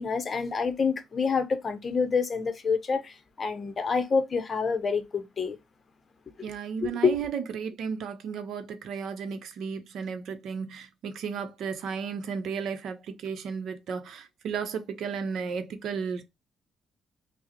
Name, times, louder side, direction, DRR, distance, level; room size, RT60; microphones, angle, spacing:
voice 1, 0.0-5.6 6.8-7.2, left 5 dB, 40° left, 0.6 m, -27 dB
voice 2, 6.4-16.2, right 6 dB, 75° right, 0.6 m, -34 dB
4.7 x 2.0 x 2.8 m
cardioid pair, 90°, 0 cm